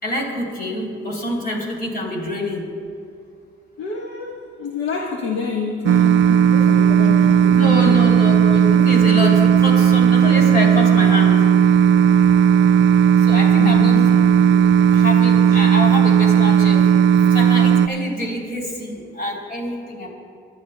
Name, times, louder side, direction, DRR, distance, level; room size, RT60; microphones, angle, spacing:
voice 1, 0.0-2.7 7.4-11.3 13.2-14.0 14.5-14.6 14.9-16.9 17.3-20.1, left 1 dB, 50° left, -1 dB, 3.4 m, -26 dB
voice 2, 3.8-8.0 13.6-14.2, left 5 dB, 75° left, 0 dB, 1.3 m, -28 dB
sound 1, 5.9-17.9, right 8 dB, 65° right, 0.4 m, -14 dB
27.5 x 11.0 x 2.2 m, 2.2 s
cardioid pair, 90°, 20 cm